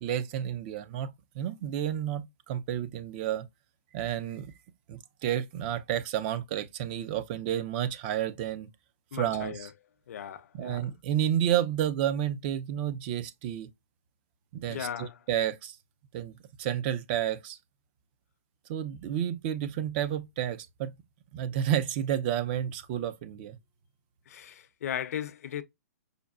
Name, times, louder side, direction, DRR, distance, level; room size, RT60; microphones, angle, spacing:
voice 1, 0.0-3.5 3.9-4.5 4.9-8.7 9.1-9.7 10.5-13.7 14.5-15.8 16.1-17.6 18.7-20.9 21.3-23.6, right 10 dB, 40° right, 0.5 m, -31 dB
voice 2, 9.1-9.7 10.1-10.9 14.7-15.2 24.3-25.6, left 9 dB, 65° left, 0.6 m, -37 dB
5.1 x 2.2 x 2.3 m
hypercardioid pair, 140°, 9 cm